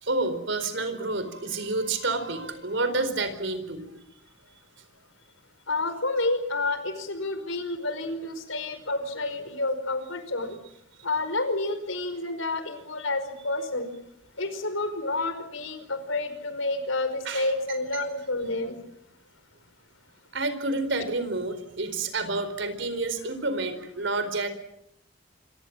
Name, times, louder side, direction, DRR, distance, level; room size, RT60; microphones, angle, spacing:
voice 1, 0.0-3.9 17.2-17.5 20.3-24.5, right 3 dB, 65° right, 11 dB, 4.5 m, -29 dB
voice 2, 5.7-10.6 11.0-13.9 14.4-18.8, left 2 dB, 80° left, 10 dB, 5.1 m, -29 dB
26.5 x 24.5 x 7.5 m, 0.78 s
head